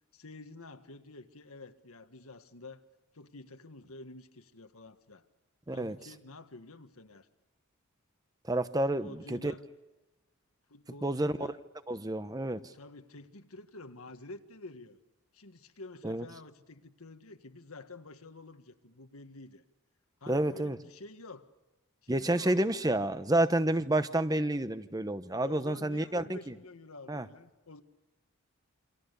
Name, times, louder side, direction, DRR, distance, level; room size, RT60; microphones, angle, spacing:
voice 1, 0.1-2.8 3.1-5.3 5.7-7.3 8.8-9.6 10.7-11.6 12.7-15.0 15.3-19.6 20.2-21.5 22.0-22.7 25.4-27.8, left 2 dB, 80° left, 1.7 m, -49 dB
voice 2, 8.4-9.5 11.0-11.3 11.9-12.6 16.0-16.3 20.3-20.8 22.1-26.5 27.1-27.3, right 1 dB, 15° right, 0.9 m, -29 dB
28.5 x 26.5 x 6.9 m
head